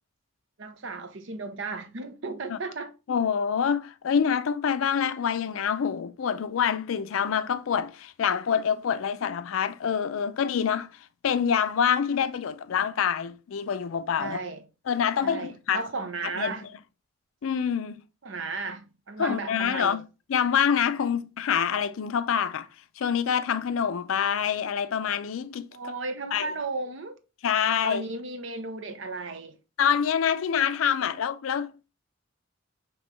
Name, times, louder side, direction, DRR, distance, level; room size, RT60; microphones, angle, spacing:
voice 1, 0.6-2.9 14.2-14.6 15.2-16.7 18.2-20.0 25.7-27.2 27.8-29.6, right 3 dB, 65° right, 0.7 m, -35 dB
voice 2, 3.1-14.4 14.9-15.8 16.4-16.5 17.4-18.0 19.2-22.7 23.0-25.9 26.3-26.5 27.4-28.0 29.8-31.9, left 7 dB, 85° left, 0.4 m, -26 dB
5.2 x 3.0 x 3.2 m
head